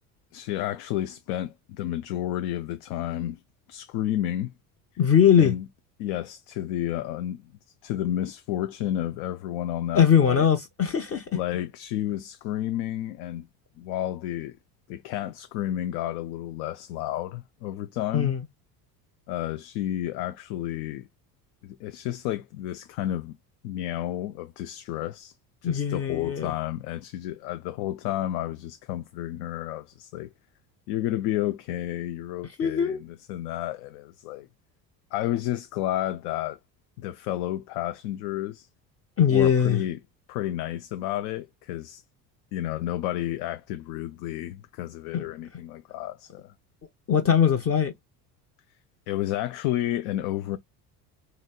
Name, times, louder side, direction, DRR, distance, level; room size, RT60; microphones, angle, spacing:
voice 1, 0.3-3.4 3.7-4.5 5.4-5.7 6.0-7.4 7.8-10.5 11.3-13.4 13.8-14.6 14.9-18.3 19.3-21.1 21.6-23.4 23.6-25.3 25.6-30.3 30.9-34.5 35.1-36.6 37.0-38.7 39.3-40.0 40.3-42.0 42.5-46.5 49.1-50.6, left 13 dB, 65° left, 0.5 m, -31 dB
voice 2, 5.0-5.6 9.9-11.3 18.1-18.5 25.6-26.5 32.6-33.0 39.2-39.8 45.1-45.3 47.1-47.9, left 8 dB, 30° left, 0.7 m, -21 dB
3.0 x 2.8 x 2.3 m
hypercardioid pair, 70°, 48 cm